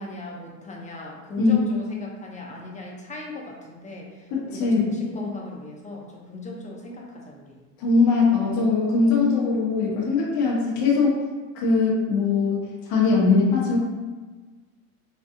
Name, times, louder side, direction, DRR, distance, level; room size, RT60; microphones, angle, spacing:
voice 1, 0.0-7.6, left 1 dB, 15° left, -1 dB, 0.8 m, -37 dB
voice 2, 4.3-5.0 7.8-11.2 11.5-12.6 12.9-13.8, left 4 dB, 60° left, -5 dB, 1.2 m, -21 dB
3.6 x 3.2 x 2.6 m, 1.3 s
supercardioid pair, 110°, 41 cm